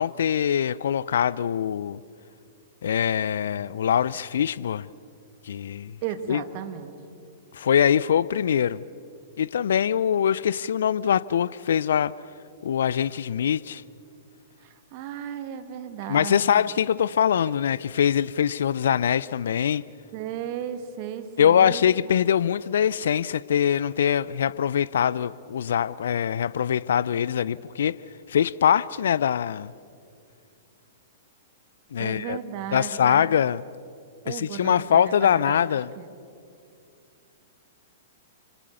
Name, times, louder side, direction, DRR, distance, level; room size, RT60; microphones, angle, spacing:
voice 1, 0.0-2.0 2.8-4.9 5.4-6.0 6.3-6.4 7.5-8.8 9.4-12.1 12.6-13.8 16.1-19.8 21.4-28.0 28.3-29.7 31.9-32.4 32.7-33.6 34.3-35.9, left 9 dB, 65° left, 0.5 m, -23 dB
voice 2, 6.0-6.9 14.6-16.7 20.1-22.2 32.0-33.3 34.2-36.1, right 9 dB, 45° right, 2.3 m, -35 dB
28.0 x 25.0 x 6.9 m
figure-of-eight pair, 105°, 0 cm